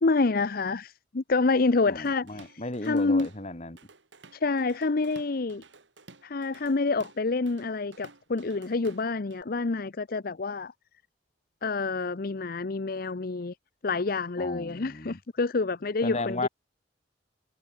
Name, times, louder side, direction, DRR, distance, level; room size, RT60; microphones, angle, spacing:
voice 1, 0.0-3.3 4.3-5.6 6.2-10.7 11.6-13.5 13.8-16.5, left 3 dB, 55° left, 0.7 m, -27 dB
voice 2, 1.9-3.8 14.4-15.2 16.0-16.5, left 2 dB, 40° left, 2.9 m, -34 dB
Drum kit / Drum, 2.0-3.4 3.8-9.4, right 3 dB, 85° right, 3.6 m, -53 dB
head